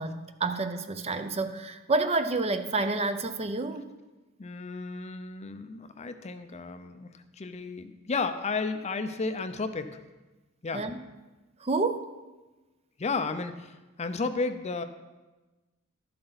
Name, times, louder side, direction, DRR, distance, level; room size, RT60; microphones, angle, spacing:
voice 1, 0.0-3.9 10.7-11.0 11.6-12.1, right 3 dB, 30° right, 9 dB, 0.5 m, -29 dB
voice 2, 4.4-7.1 7.4-10.0 10.6-10.8 13.0-14.8, left 4 dB, 30° left, 9 dB, 0.5 m, -33 dB
12.5 x 7.8 x 4.0 m, 1.2 s
head